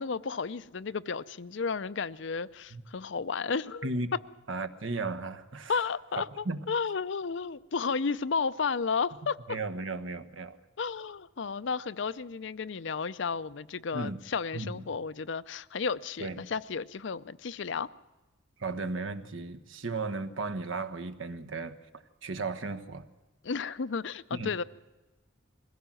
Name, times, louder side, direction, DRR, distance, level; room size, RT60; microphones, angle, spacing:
voice 1, 0.0-4.2 5.7-9.6 10.8-17.9 23.4-24.6, left 5 dB, 60° left, 15 dB, 0.6 m, -33 dB
voice 2, 4.5-5.7 6.2-6.6 9.5-10.6 13.9-14.2 14.5-14.8 16.2-16.4 18.6-23.1 24.3-24.5, right 3 dB, 75° right, 10 dB, 1.2 m, -35 dB
21.5 x 16.0 x 7.6 m, 1.1 s
head